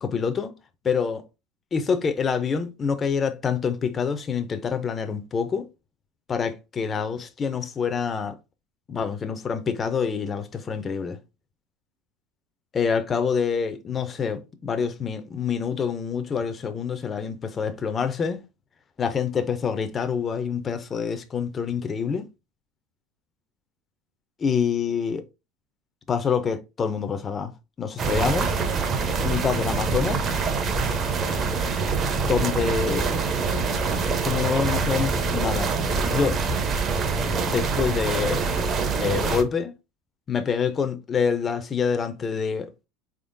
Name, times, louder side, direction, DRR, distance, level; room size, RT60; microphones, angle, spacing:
voice 1, 0.0-0.5 0.8-1.2 1.7-5.7 6.3-8.4 8.9-11.2 12.7-18.4 19.0-22.3 24.4-25.2 26.1-27.5 27.8-28.6 29.2-30.3 32.2-33.0 33.6-33.7 34.2-35.7 36.1-36.4 37.5-38.4 39.0-39.7 40.3-42.9, left 6 dB, 25° left, 0.5 m, -26 dB
sound 1, 28.0-39.4, right 4 dB, 35° right, 0.8 m, -25 dB
4.1 x 3.6 x 2.6 m
supercardioid pair, 140°, 0 cm